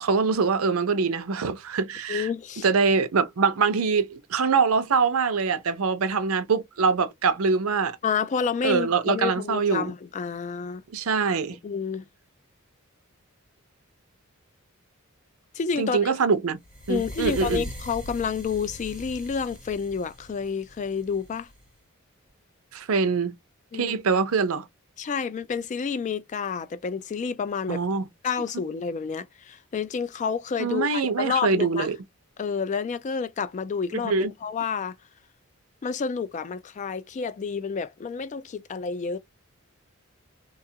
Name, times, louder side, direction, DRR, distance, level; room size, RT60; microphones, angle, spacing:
voice 1, 0.0-2.3 2.6-8.0 8.6-9.9 10.9-11.6 15.8-16.6 16.9-17.6 22.7-23.3 23.7-24.6 27.7-28.1 30.6-32.0 34.0-34.3, right 5 dB, 75° right, 0.6 m, -24 dB
voice 2, 2.1-2.7 8.0-10.8 11.6-12.0 15.5-16.1 16.9-21.5 23.7-24.0 25.0-27.8 28.2-31.9 32.4-34.9 35.8-39.2, left 6 dB, 35° left, 0.3 m, -29 dB
sound 1, 16.6-21.7, equal, 5° right, 1.4 m, -40 dB
2.8 x 2.3 x 2.7 m
head